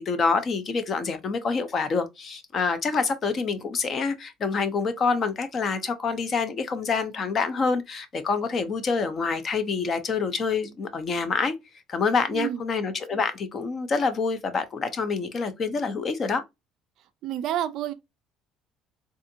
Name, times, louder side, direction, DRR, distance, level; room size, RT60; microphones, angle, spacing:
voice 1, 0.1-11.5 11.9-16.4, left 4 dB, 30° left, 0.5 m, -26 dB
voice 2, 12.3-12.6 17.2-17.9, right 11 dB, 50° right, 0.3 m, -29 dB
3.6 x 2.4 x 2.6 m
cardioid pair, 175°, 0 cm